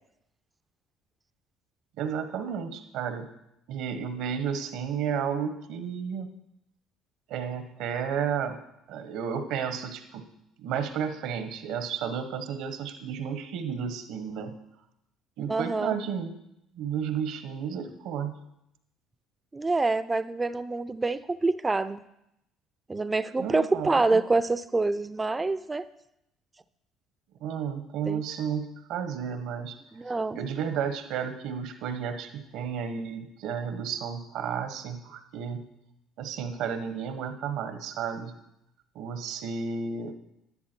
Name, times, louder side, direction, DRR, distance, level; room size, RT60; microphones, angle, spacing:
voice 1, 2.0-3.2 3.7-6.3 7.3-8.6 8.9-10.2 10.6-14.5 15.4-16.3 16.7-18.3 23.4-24.2 27.4-29.8 30.3-35.6 36.2-38.4 38.9-40.1, right 7 dB, 75° right, 8 dB, 1.3 m, -32 dB
voice 2, 15.5-15.9 19.5-22.0 22.9-25.8 28.1-28.2 29.9-30.4, right 3 dB, 20° right, 13 dB, 0.6 m, -26 dB
11.0 x 10.5 x 4.5 m, 0.81 s
supercardioid pair, 75°, 0 cm